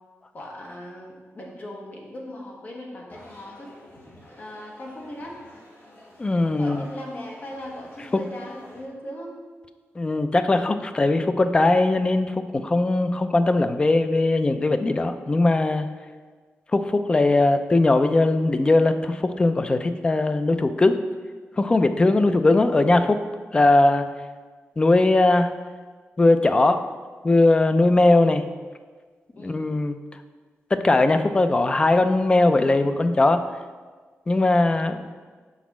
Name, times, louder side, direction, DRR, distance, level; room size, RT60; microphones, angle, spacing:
voice 1, 0.3-3.7 4.4-5.4 6.6-9.4 29.3-29.7, left 1 dB, 40° left, -1 dB, 1.2 m, -38 dB
sound 1, 3.1-8.8, left 1 dB, 55° left, 2.1 m, -49 dB
voice 2, 6.2-6.8 10.0-15.9 16.7-21.0 21.6-23.2 23.5-24.1 24.8-25.5 26.2-26.8 27.2-28.4 29.4-30.0 30.7-33.4 34.3-35.1, left 2 dB, 20° left, 9 dB, 0.3 m, -20 dB
6.0 x 4.1 x 6.0 m, 1.4 s
wide cardioid pair, 180°, 5 cm